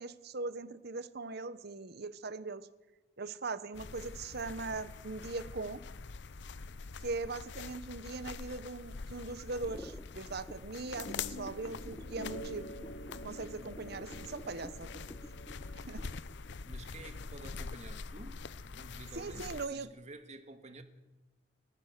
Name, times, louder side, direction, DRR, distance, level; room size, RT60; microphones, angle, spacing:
voice 1, 0.0-2.7 3.2-5.8 7.0-12.7 13.2-15.1 15.7-16.1 19.1-19.9, right 3 dB, 55° right, 1.1 m, -40 dB
sound 1, 3.7-19.7, left 4 dB, 65° left, 0.7 m, -45 dB
sound 2, 9.6-17.4, equal, 5° left, 0.8 m, -52 dB
sound 3, 11.1-16.2, equal, 80° left, 2.6 m, -48 dB
voice 2, 13.8-14.1 16.6-18.4 18.7-20.8, right 2 dB, 40° right, 2.0 m, -50 dB
30.0 x 15.0 x 6.8 m
head